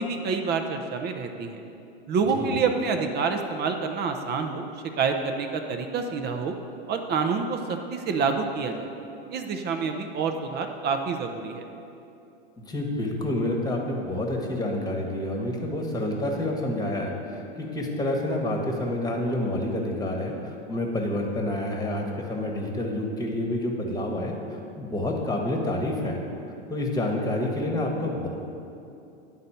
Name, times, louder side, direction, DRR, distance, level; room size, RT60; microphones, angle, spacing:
voice 1, 0.0-1.6 2.1-4.7 5.0-6.6 6.9-8.9 9.3-11.6, right 5 dB, 30° right, 5 dB, 0.6 m, -27 dB
voice 2, 12.6-26.2 26.7-28.3, left 1 dB, 10° left, 0 dB, 1.3 m, -28 dB
10.5 x 4.0 x 5.6 m, 2.7 s
hypercardioid pair, 110°, 32 cm